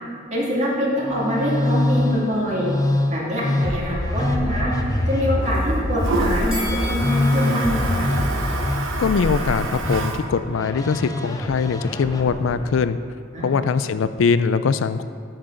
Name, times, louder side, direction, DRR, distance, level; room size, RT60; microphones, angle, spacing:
voice 1, 0.3-2.7 3.1-4.7 5.1-8.1 13.3-13.6, equal, 35° right, -5 dB, 2.2 m, -24 dB
Musical instrument, 1.0-12.8, left 1 dB, 20° left, 0.6 m, -24 dB
Toilet flush, 1.1-12.6, right 3 dB, 75° right, 1.0 m, -32 dB
Bell, 6.5-9.7 10.0-10.2, left 1 dB, 5° right, 2.7 m, -37 dB
voice 2, 9.0-13.0 13.4-15.0, left 5 dB, 75° left, 13 dB, 0.4 m, -22 dB
8.7 x 6.1 x 6.5 m, 2.1 s
head